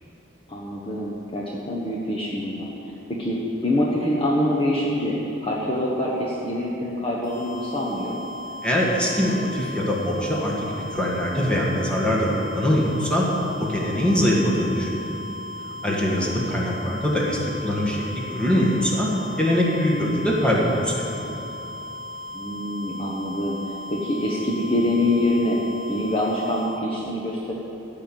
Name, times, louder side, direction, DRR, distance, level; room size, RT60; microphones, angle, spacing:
voice 1, 0.5-8.2 16.0-16.3 22.3-25.6 25.9-27.5, left 1 dB, 30° left, -5 dB, 1.2 m, -25 dB
sound 1, 7.2-26.7, left 2 dB, 70° left, 3.6 m, -37 dB
voice 2, 8.6-13.3 13.6-14.9 15.8-19.1 19.4-21.2, equal, 5° left, -4 dB, 1.9 m, -23 dB
14.5 x 5.8 x 9.1 m, 3.0 s
head